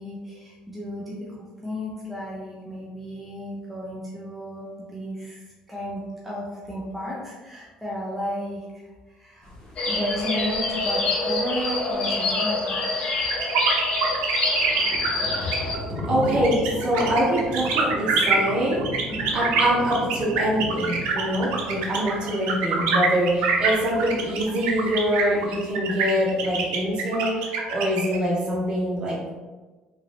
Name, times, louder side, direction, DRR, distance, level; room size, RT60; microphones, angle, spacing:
voice 1, 0.0-9.5 9.9-12.9, equal, 5° right, -6 dB, 0.8 m, -33 dB
sound 1, 9.4-25.7, left 1 dB, 25° left, 1.3 m, -38 dB
sound 2, 9.8-15.8, left 2 dB, 45° left, 0.9 m, -26 dB
sound 3, 13.3-28.2, right 5 dB, 90° right, 0.7 m, -25 dB
voice 2, 15.9-18.8 19.3-29.3, equal, 35° right, -5 dB, 1.4 m, -24 dB
3.6 x 2.7 x 3.4 m, 1.3 s
cardioid pair, 110°, 3 cm